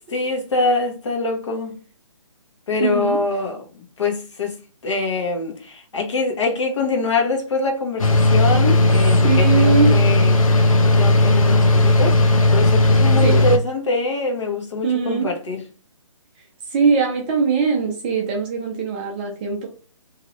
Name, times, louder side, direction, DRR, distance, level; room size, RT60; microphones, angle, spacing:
voice 1, 0.1-1.8 2.7-4.6 4.8-10.4 10.7-15.6, left 3 dB, 60° left, 1.1 m, -24 dB
voice 2, 2.8-3.2 9.2-10.0 13.2-13.4 14.8-15.3 16.7-19.7, right 5 dB, 15° right, 0.5 m, -21 dB
sound 1, 8.0-13.6, left 2 dB, 85° left, 0.8 m, -15 dB
3.1 x 2.7 x 2.6 m
hypercardioid pair, 150°, 17 cm